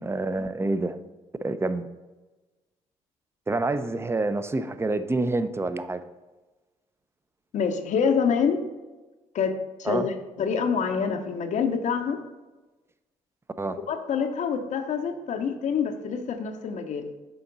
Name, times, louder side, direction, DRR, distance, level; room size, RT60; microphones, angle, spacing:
voice 1, 0.0-1.0 1.4-1.9 3.5-6.0 9.9-10.1 13.6-13.8, right 2 dB, 20° right, 12 dB, 0.5 m, -27 dB
voice 2, 7.5-8.7 9.3-9.5 9.8-12.2 13.9-17.1, left 6 dB, 60° left, 6 dB, 0.7 m, -26 dB
6.9 x 4.5 x 3.9 m, 1.2 s
supercardioid pair, 60°, 14 cm